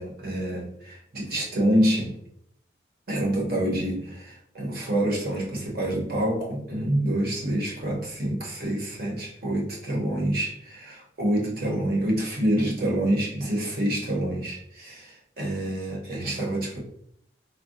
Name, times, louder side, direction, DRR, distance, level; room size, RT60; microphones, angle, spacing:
voice 1, 0.0-2.1 3.1-16.8, right 1 dB, 55° right, -2 dB, 0.9 m, -27 dB
3.5 x 2.2 x 2.4 m, 0.69 s
head